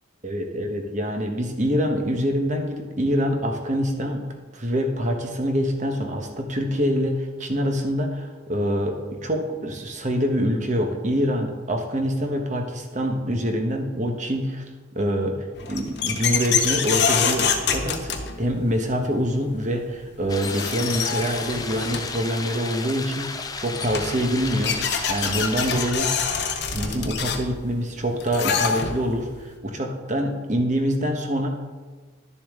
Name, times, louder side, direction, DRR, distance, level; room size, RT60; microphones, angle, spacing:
voice 1, 0.2-4.2 4.5-14.6 14.9-26.1 26.7-31.5, equal, 35° right, 3 dB, 1.1 m, -25 dB
sound 1, 15.6-18.7 20.0-20.1 20.4-22.2 23.4-23.5 23.7-29.2, left 6 dB, 55° left, 0.8 m, -26 dB
sound 2, 20.3-25.9, left 4 dB, 20° left, 0.5 m, -33 dB
11.5 x 6.9 x 3.6 m, 1.3 s
head